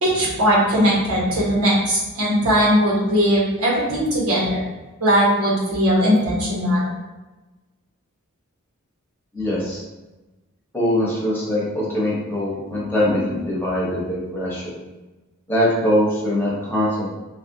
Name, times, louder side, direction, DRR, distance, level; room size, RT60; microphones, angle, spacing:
voice 1, 0.0-4.6 5.0-6.9, equal, 85° right, -6 dB, 1.3 m, -19 dB
voice 2, 9.3-9.8 10.7-14.8 15.5-17.2, left 1 dB, 10° left, -7 dB, 1.0 m, -22 dB
4.0 x 2.5 x 2.7 m, 1.1 s
head